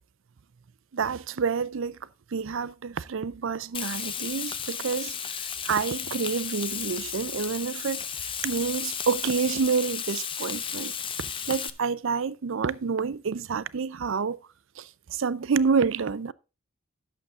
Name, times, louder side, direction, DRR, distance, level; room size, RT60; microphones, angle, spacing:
voice 1, 0.9-2.0 2.3-8.1 8.4-10.9 11.2-14.4 14.8-16.3, right 5 dB, 60° right, 0.5 m, -28 dB
Frying (food), 3.7-11.7, left 7 dB, 25° left, 0.5 m, -34 dB
11.5 x 7.0 x 3.7 m
head